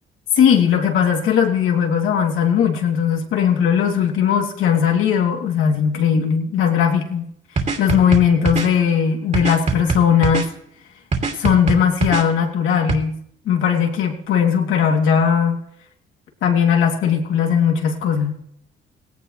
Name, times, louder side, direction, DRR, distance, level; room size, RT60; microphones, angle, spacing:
voice 1, 0.4-7.2 7.8-10.5 11.3-13.2 13.4-15.6 16.4-18.3, left 8 dB, 85° left, 2 dB, 3.1 m, -18 dB
sound 1, 7.6-8.7 9.3-10.5 11.1-12.2 12.9-13.0, right 4 dB, 35° right, 2.8 m, -21 dB
18.5 x 17.0 x 3.3 m, 0.68 s
cardioid pair, 90°, 20 cm